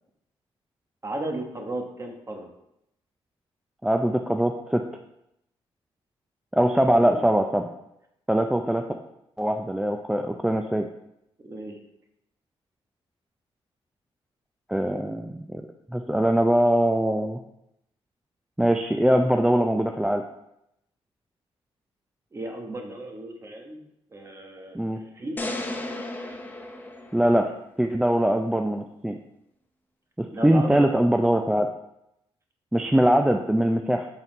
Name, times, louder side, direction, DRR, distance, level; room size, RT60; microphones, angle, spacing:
voice 1, 1.0-2.5 7.0-7.2 11.4-11.8 22.3-23.8 24.1-25.4 30.3-30.9, right 1 dB, 30° right, 3 dB, 1.2 m, -35 dB
voice 2, 3.8-4.8 6.5-7.7 8.3-8.8 9.4-10.9 14.7-15.6 15.9-17.4 18.6-20.2 24.7-25.0 27.1-27.5 27.8-29.2 30.2-31.7 32.7-34.1, right 1 dB, 5° right, 4 dB, 0.4 m, -22 dB
sound 1, 25.4-27.7, left 2 dB, 15° left, 0.8 m, -34 dB
6.0 x 4.2 x 3.9 m, 0.81 s
cardioid pair, 85°, 11 cm